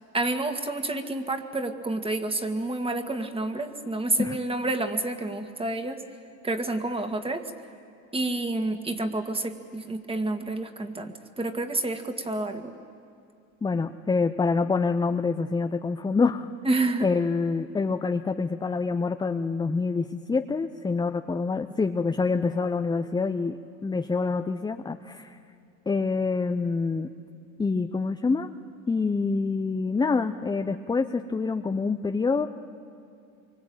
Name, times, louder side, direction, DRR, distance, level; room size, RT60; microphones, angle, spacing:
voice 1, 0.1-6.0 6.4-7.5 8.1-12.7 16.6-17.1, right 2 dB, 15° right, 7 dB, 2.0 m, -29 dB
voice 2, 13.6-16.5 17.0-25.4 25.9-27.1 27.6-28.5 28.9-32.5, left 4 dB, 10° left, 7 dB, 0.7 m, -26 dB
25.0 x 24.0 x 8.9 m, 2.4 s
hypercardioid pair, 95°, 40 cm